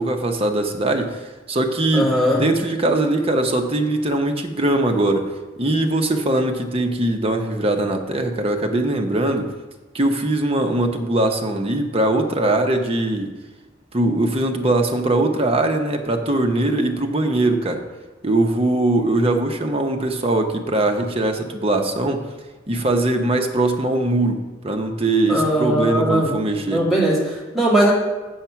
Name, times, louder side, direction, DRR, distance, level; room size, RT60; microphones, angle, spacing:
voice 1, 0.0-5.3 5.6-9.5 9.9-13.3 13.9-17.8 18.2-22.3 22.7-26.8, right 2 dB, 30° right, 4 dB, 0.9 m, -21 dB
voice 2, 1.9-2.4 25.3-26.4 26.6-27.9, right 1 dB, ahead, -6 dB, 2.4 m, -19 dB
7.4 x 7.2 x 5.7 m, 1.2 s
head